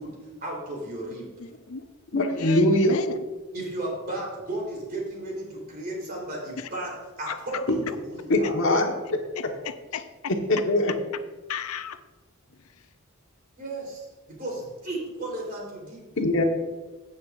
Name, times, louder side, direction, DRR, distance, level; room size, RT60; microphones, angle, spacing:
voice 1, 0.0-1.3 3.5-8.5 13.6-14.0 14.3-16.0, right 1 dB, 45° right, -2 dB, 3.6 m, -34 dB
voice 2, 1.4-1.8 2.3-3.2 6.6-6.7 7.3-7.4 8.4-8.5 9.4-10.1 11.5-12.0, left 6 dB, 80° left, 11 dB, 0.6 m, -35 dB
voice 3, 2.1-3.0 8.3-8.9 10.5-10.9 16.2-16.4, left 1 dB, 60° left, 3 dB, 1.3 m, -21 dB
16.0 x 7.9 x 2.5 m, 1.2 s
head